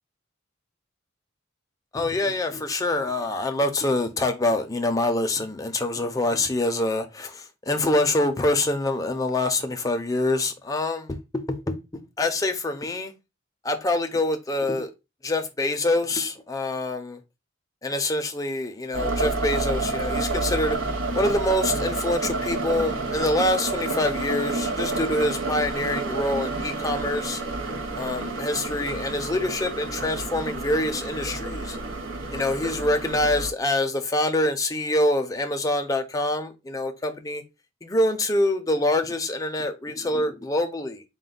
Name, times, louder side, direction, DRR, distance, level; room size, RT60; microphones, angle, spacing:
voice 1, 1.9-11.8 12.2-13.1 13.6-14.9 15.2-17.2 17.8-20.8 21.2-27.4 27.9-31.8 32.3-37.4 37.8-41.0, left 1 dB, 15° left, 0.5 m, -25 dB
sound 1, 18.9-33.5, right 3 dB, 85° right, 0.8 m, -29 dB
4.2 x 2.2 x 3.7 m
head